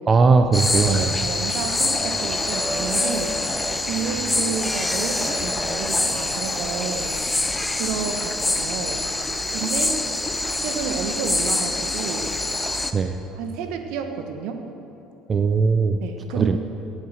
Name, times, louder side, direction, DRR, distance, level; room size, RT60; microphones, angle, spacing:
voice 1, 0.1-1.1 12.9-13.2 15.3-16.0 16.3-16.6, right 4 dB, 35° right, 7 dB, 0.7 m, -19 dB
sound 1, 0.5-12.9, left 2 dB, 15° left, 1.0 m, -25 dB
voice 2, 0.9-3.3 3.7-7.1 7.8-9.0 9.5-10.0 10.6-12.3 13.4-14.7 16.0-16.6, right 6 dB, 70° right, 6 dB, 1.3 m, -30 dB
17.5 x 8.1 x 6.5 m, 3.0 s
hypercardioid pair, 70°, 0 cm